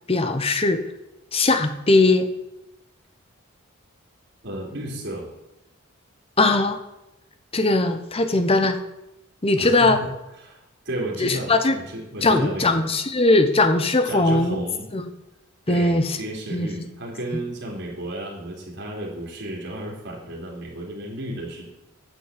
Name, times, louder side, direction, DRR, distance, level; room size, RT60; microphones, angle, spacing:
voice 1, 0.1-0.8 1.3-2.3 6.4-6.8 7.5-8.8 9.4-10.0 11.2-11.8 12.2-14.6 14.9-15.1 15.7-16.2 16.5-16.7, left 2 dB, 25° left, 8 dB, 0.9 m, -19 dB
voice 2, 4.4-5.3 9.5-10.1 10.4-10.6 10.8-12.8 14.0-14.9 15.7-21.7, right 1 dB, 55° right, -3 dB, 3.2 m, -33 dB
9.2 x 6.2 x 8.2 m, 0.92 s
head